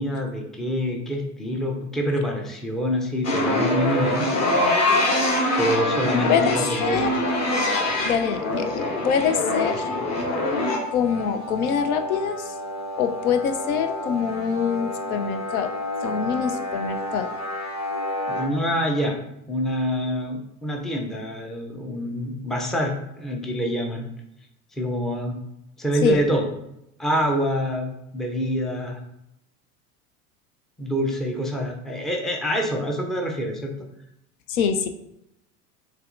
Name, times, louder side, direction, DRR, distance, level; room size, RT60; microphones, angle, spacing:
voice 1, 0.0-5.1 5.6-7.1 18.3-19.2 19.5-24.0 24.8-25.4 25.8-26.5 27.0-27.9 28.1-29.0 30.8-33.9, equal, ahead, 1 dB, 0.4 m, -26 dB
sound 1, 3.2-18.5, left 1 dB, 35° left, 1.2 m, -26 dB
voice 2, 6.8-7.1 8.0-9.9 10.9-12.5 13.0-15.7 16.0-17.3 26.0-26.2 34.5-34.9, left 7 dB, 65° left, 8 dB, 0.6 m, -24 dB
6.6 x 2.4 x 2.5 m, 0.83 s
hypercardioid pair, 85°, 46 cm